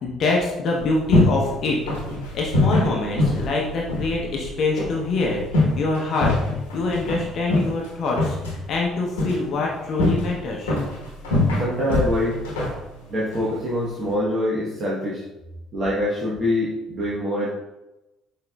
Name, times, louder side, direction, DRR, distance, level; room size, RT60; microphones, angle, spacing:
voice 1, 0.0-2.0 2.3-6.3 6.7-10.7, left 3 dB, 55° left, -1 dB, 0.7 m, -25 dB
sound 1, 0.7-14.1, left 2 dB, 80° left, 1.0 m, -25 dB
sound 2, 0.8-5.8, right 2 dB, 85° right, 0.8 m, -39 dB
voice 2, 11.6-12.4 13.1-15.2 15.7-17.5, left 1 dB, 45° right, -7 dB, 1.0 m, -24 dB
5.6 x 2.8 x 2.2 m, 0.96 s
hypercardioid pair, 55°, 0 cm